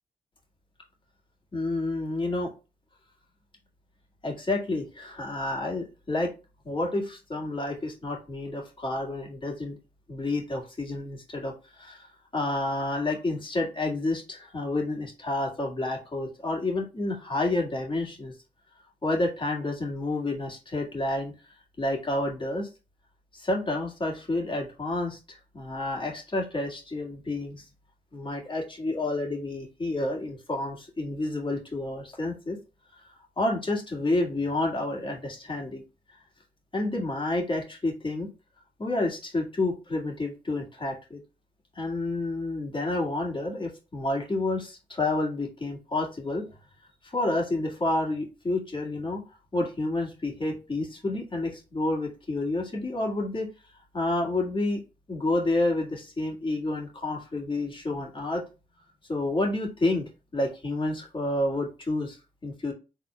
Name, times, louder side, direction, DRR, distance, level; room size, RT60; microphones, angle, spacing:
voice 1, 1.5-2.5 4.2-6.3 6.6-9.8 10.1-18.3 19.0-21.3 21.8-22.7 23.3-27.6 28.1-32.6 32.9-33.0 33.4-35.8 36.7-38.3 38.8-41.2 41.8-46.5 47.0-49.2 49.5-53.5 53.9-54.8 55.1-58.4 59.1-62.7, left 2 dB, 30° left, 0 dB, 1.8 m, -29 dB
4.6 x 3.5 x 2.2 m, 0.29 s
cardioid pair, 60°, 16 cm